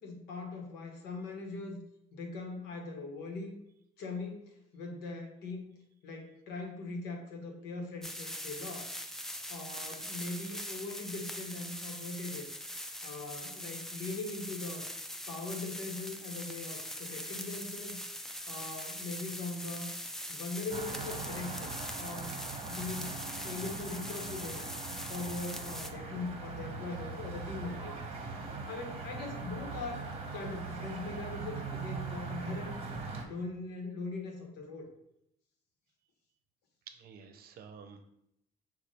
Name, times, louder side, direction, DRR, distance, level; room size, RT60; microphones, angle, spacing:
voice 1, 0.0-1.8 2.1-3.6 4.0-5.7 6.0-8.9 9.5-12.5 13.0-14.9 15.3-18.0 18.5-19.9 20.3-22.4 22.6-24.6 24.9-27.9 28.7-30.1 30.3-32.7 33.2-34.9, left 3 dB, 85° left, 2 dB, 1.1 m, -41 dB
sound 1, 8.0-25.9, equal, 5° left, 0.4 m, -42 dB
sound 2, 20.7-33.2, right 4 dB, 35° right, 0.9 m, -41 dB
voice 2, 28.2-28.7 36.9-38.1, right 6 dB, 65° right, 8 dB, 0.6 m, -53 dB
5.0 x 2.4 x 4.2 m, 0.76 s
cardioid pair, 110°, 17 cm